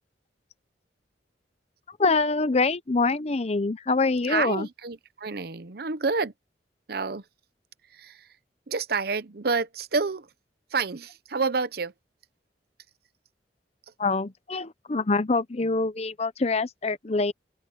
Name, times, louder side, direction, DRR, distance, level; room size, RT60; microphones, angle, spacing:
voice 1, 2.0-4.7 14.0-17.3, left 3 dB, 35° left, 0.7 m, -25 dB
voice 2, 4.2-6.3 6.9-7.2 7.9-8.3 8.7-10.3 10.7-11.9, right 4 dB, 60° right, 0.8 m, -29 dB
open air
head